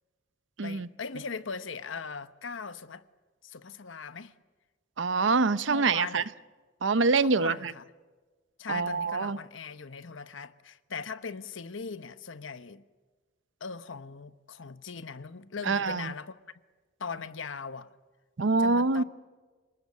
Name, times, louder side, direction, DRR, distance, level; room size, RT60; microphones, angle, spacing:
voice 1, 0.6-3.0 3.4-4.3 5.7-6.3 7.2-7.9 8.6-12.8 13.6-16.6 17.0-17.9 18.6-19.0, left 5 dB, 80° left, 1.0 m, -40 dB
voice 2, 5.0-6.2 6.8-7.7 8.7-9.4 15.7-16.1 18.4-19.0, right 4 dB, 70° right, 0.8 m, -25 dB
27.5 x 19.5 x 8.4 m
head